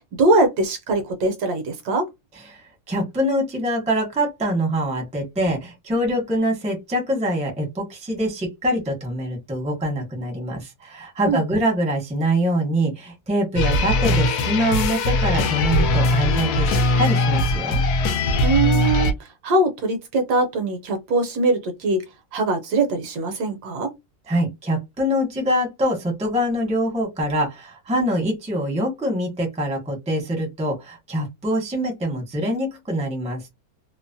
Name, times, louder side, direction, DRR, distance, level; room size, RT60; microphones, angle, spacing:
voice 1, 0.2-2.1 11.3-11.4 18.4-19.1 19.4-22.0 22.3-23.9, right 2 dB, 70° right, 1.2 m, -21 dB
voice 2, 2.4-17.8 24.3-33.4, equal, 5° right, 0.5 m, -24 dB
sound 1, 13.5-19.1, left 2 dB, 70° left, 1.0 m, -20 dB
3.0 x 2.0 x 2.6 m
omnidirectional pair, 2.0 m